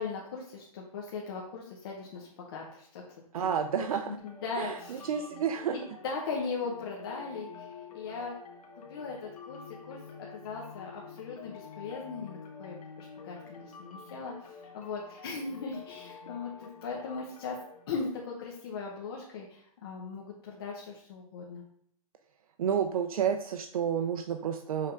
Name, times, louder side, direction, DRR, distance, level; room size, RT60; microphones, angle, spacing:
voice 1, 0.0-3.0 3.3-3.5 3.7-5.1 5.7-8.4 8.7-10.0 10.3-17.6 17.9-21.6, left 4 dB, 40° left, -2 dB, 0.9 m, -39 dB
voice 2, 3.3-4.2 4.5-5.8 22.6-24.9, right 8 dB, 70° right, 7 dB, 0.5 m, -30 dB
sound 1, 4.2-18.6, left 5 dB, 75° left, 1.3 m, -49 dB
5.8 x 3.6 x 4.5 m, 0.64 s
hypercardioid pair, 175°, 19 cm